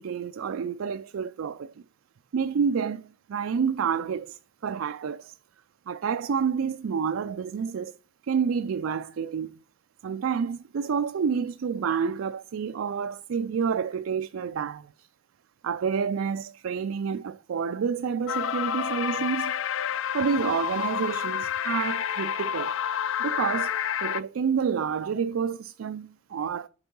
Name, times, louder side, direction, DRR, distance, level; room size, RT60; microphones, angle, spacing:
voice 1, 0.0-1.7 2.3-5.3 5.9-7.9 8.3-9.6 10.0-15.1 15.6-19.5 20.1-22.7 23.2-23.7 24.0-26.7, right 6 dB, 70° right, 0.4 m, -29 dB
sound 1, 18.3-24.2, left 9 dB, 65° left, 0.4 m, -29 dB
8.1 x 4.6 x 5.3 m
head